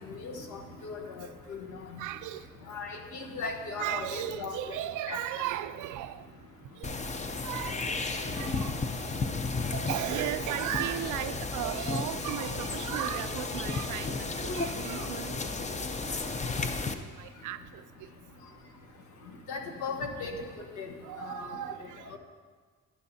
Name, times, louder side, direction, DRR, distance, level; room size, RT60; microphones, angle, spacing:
voice 1, 0.1-1.8 2.7-4.5 5.1-5.2 19.5-20.9 21.2-21.6 22.1-22.2, left 4 dB, 75° left, 3 dB, 1.2 m, -38 dB
voice 2, 2.0-2.4 3.8-6.3 6.8-7.0 7.4-8.8 9.7-16.2 16.8-17.8 21.0-22.1, right 13 dB, 80° right, 12 dB, 0.5 m, -36 dB
sound 1, 6.8-16.9, left 3 dB, 25° left, 0.6 m, -33 dB
13.0 x 9.0 x 2.7 m, 1.5 s
cardioid pair, 90°, 30 cm